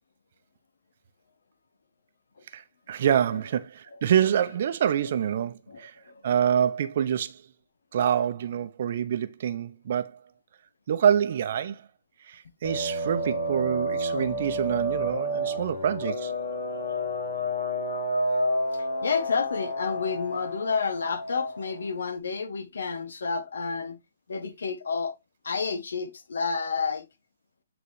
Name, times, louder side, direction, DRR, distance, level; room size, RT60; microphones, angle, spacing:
voice 1, 2.5-5.9 6.2-7.4 7.9-10.2 10.9-11.8 12.3-16.3, right 9 dB, 50° right, 0.7 m, -26 dB
voice 2, 5.7-6.2 17.1-17.2 18.7-24.0 24.3-25.1 25.4-27.0, left 5 dB, 75° left, 1.4 m, -30 dB
sound 1, 12.6-21.9, equal, 60° left, 1.7 m, -30 dB
8.7 x 3.9 x 3.2 m
hypercardioid pair, 145°, 0 cm